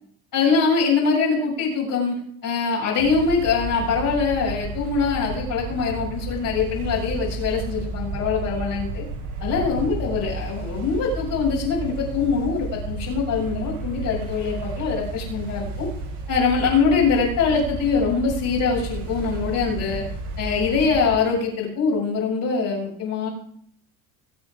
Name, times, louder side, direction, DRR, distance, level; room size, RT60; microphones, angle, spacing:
voice 1, 0.3-2.1 2.4-9.0 9.4-15.9 16.3-20.0 20.4-23.3, left 5 dB, 55° left, -4 dB, 7.0 m, -23 dB
sound 1, 3.0-21.2, right 3 dB, 75° right, 7.5 m, -32 dB
23.0 x 8.3 x 4.9 m, 0.65 s
supercardioid pair, 105°, 38 cm